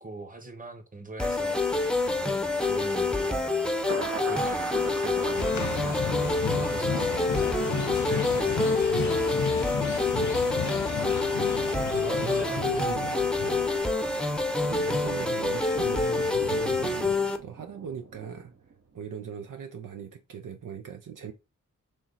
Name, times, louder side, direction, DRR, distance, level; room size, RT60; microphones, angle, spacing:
voice 1, 0.0-3.7 4.2-7.4 7.9-9.7 11.5-12.8 13.4-13.7, right 3 dB, 25° right, 1.2 m, -42 dB
sound 1, 1.2-17.4, left 3 dB, 5° left, 0.7 m, -27 dB
Thunder, 2.0-19.1 19.4-19.5, right 4 dB, 50° right, 0.9 m, -43 dB
sound 2, 5.4-13.8, left 6 dB, 65° left, 0.7 m, -33 dB
voice 2, 11.6-13.0 14.9-18.5 18.9-21.3, right 7 dB, 70° right, 0.6 m, -39 dB
3.6 x 3.1 x 4.0 m
cardioid pair, 45°, 32 cm